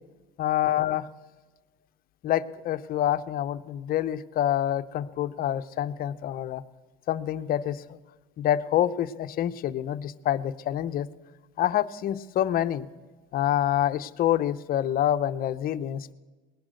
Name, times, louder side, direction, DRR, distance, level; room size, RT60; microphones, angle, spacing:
voice 1, 0.4-1.1 2.2-6.6 7.1-8.0 8.4-11.1 11.6-12.9 13.3-16.1, left 11 dB, 45° left, 12 dB, 0.7 m, -27 dB
19.5 x 10.5 x 6.4 m, 1.3 s
cardioid pair, 130°, 20 cm